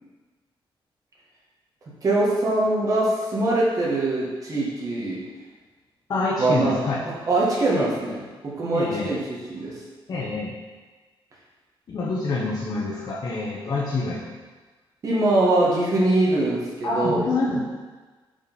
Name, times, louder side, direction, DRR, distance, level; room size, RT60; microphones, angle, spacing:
voice 1, 2.0-5.2 6.4-6.8 7.3-9.2 9.5-9.8 15.0-17.2, right 2 dB, 40° right, -5 dB, 1.7 m, -22 dB
voice 2, 6.1-7.0 7.7-7.9 8.7-9.1 10.1-10.5 11.9-14.2 16.8-17.7, left 3 dB, 45° left, -5 dB, 0.9 m, -26 dB
5.3 x 5.0 x 5.4 m, 1.3 s
wide cardioid pair, 175°, 9 cm